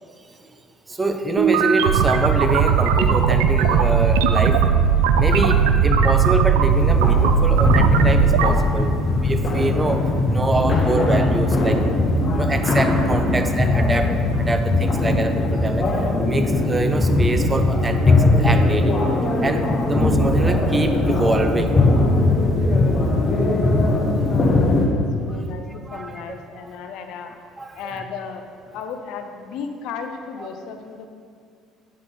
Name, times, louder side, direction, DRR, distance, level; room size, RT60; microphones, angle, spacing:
voice 1, 0.9-4.6 5.2-11.8 12.3-14.1 14.4-15.9 16.2-19.0 19.4-21.8 25.9-26.4 27.6-28.0 30.4-30.5, right 2 dB, 20° right, 7 dB, 0.6 m, -25 dB
sound 1, 1.4-8.5, right 6 dB, 70° right, 0.4 m, -17 dB
sound 2, 6.7-24.9, left 2 dB, 35° left, 1.1 m, -20 dB
voice 2, 24.2-27.3 27.7-28.5 28.7-31.1, left 6 dB, 60° left, 6 dB, 0.6 m, -35 dB
9.5 x 5.1 x 3.9 m, 2.2 s
figure-of-eight pair, 55°, 0 cm